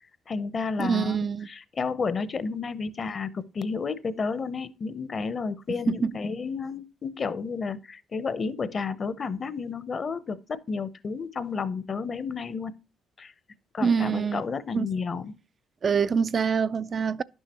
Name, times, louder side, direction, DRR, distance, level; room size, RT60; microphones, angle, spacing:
voice 1, 0.3-12.7 13.2-13.3 13.7-15.3, left 5 dB, 45° left, 0.7 m, -31 dB
voice 2, 0.8-1.5 5.9-6.1 13.8-14.4 14.7-14.9 15.8-17.2, right 6 dB, 50° right, 0.3 m, -25 dB
11.0 x 6.3 x 2.9 m
supercardioid pair, 65°, 0 cm